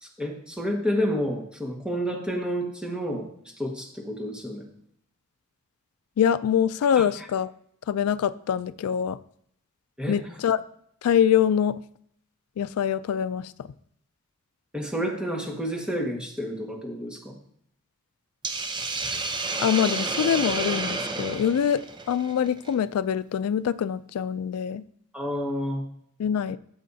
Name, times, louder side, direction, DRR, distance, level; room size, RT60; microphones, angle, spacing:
voice 1, 0.0-4.7 7.0-7.3 10.0-10.2 14.7-17.4 25.1-25.9, equal, 5° right, -1 dB, 1.5 m, -30 dB
voice 2, 6.2-7.5 7.9-9.2 10.1-10.6 11.0-11.8 12.6-13.7 19.6-24.8 26.2-26.6, left 8 dB, 90° left, 16 dB, 0.3 m, -24 dB
Hiss, 18.4-22.7, right 3 dB, 20° right, 0.7 m, -30 dB
14.5 x 6.4 x 2.7 m, 0.68 s
head